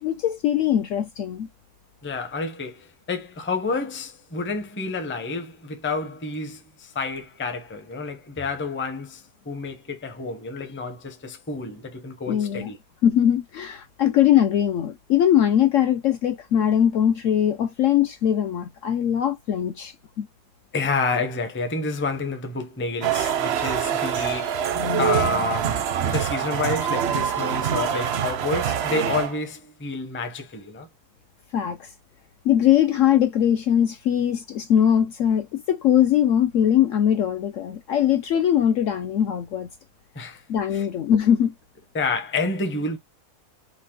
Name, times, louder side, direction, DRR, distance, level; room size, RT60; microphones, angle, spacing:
voice 1, 0.0-1.5 12.3-12.7 13.0-20.3 24.7-25.1 31.5-31.9 32.4-39.7 40.5-41.5, left 10 dB, 65° left, 0.8 m, -21 dB
voice 2, 2.0-12.8 20.7-24.6 25.0-30.9 40.1-40.4 40.7-40.9 41.9-43.0, left 3 dB, 15° left, 0.5 m, -29 dB
sound 1, 23.0-29.4, right 9 dB, 60° right, 0.6 m, -25 dB
5.1 x 2.1 x 3.7 m
omnidirectional pair, 1.7 m